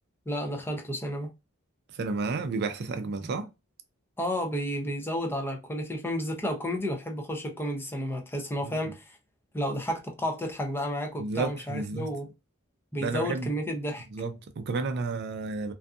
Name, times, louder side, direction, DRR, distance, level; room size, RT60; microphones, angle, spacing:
voice 1, 0.3-1.3 3.2-3.3 4.2-9.2 9.5-12.3 12.9-14.1, equal, 10° left, 0.5 m, -32 dB
voice 2, 1.9-3.5 8.6-8.8 11.2-12.1 13.0-13.5 14.1-15.7, right 3 dB, 50° right, 0.4 m, -31 dB
2.6 x 2.4 x 2.3 m
head